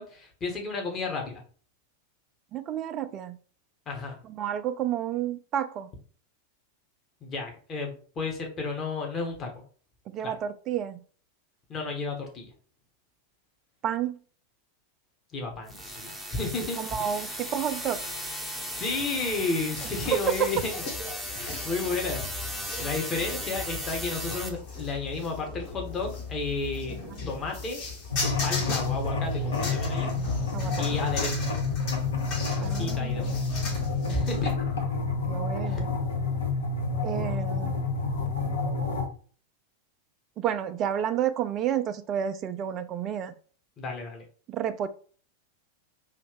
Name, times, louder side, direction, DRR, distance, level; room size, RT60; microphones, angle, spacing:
voice 1, 0.0-1.4 3.9-4.2 7.2-9.5 10.2-10.3 11.7-12.5 15.3-17.2 18.7-20.8 21.3-22.2 22.8-27.0 27.3-27.8 28.4-30.1 30.7-31.5 32.5-33.3 34.1-34.6 35.7-35.8 43.8-44.2, left 3 dB, 25° left, 1.3 m, -32 dB
voice 2, 2.5-3.4 4.2-5.9 10.1-11.0 13.8-14.1 16.8-18.0 20.1-20.5 30.5-30.7 32.6-33.4 35.3-35.9 37.0-37.7 40.4-43.3 44.5-44.9, right 10 dB, 30° right, 0.4 m, -30 dB
sound 1, 15.7-24.5, equal, ahead, 0.9 m, -36 dB
sound 2, 19.7-34.5, left 3 dB, 45° left, 2.1 m, -37 dB
sound 3, 28.1-39.1, left 3 dB, 65° left, 1.0 m, -29 dB
5.1 x 2.8 x 3.4 m
figure-of-eight pair, 90°, 0 cm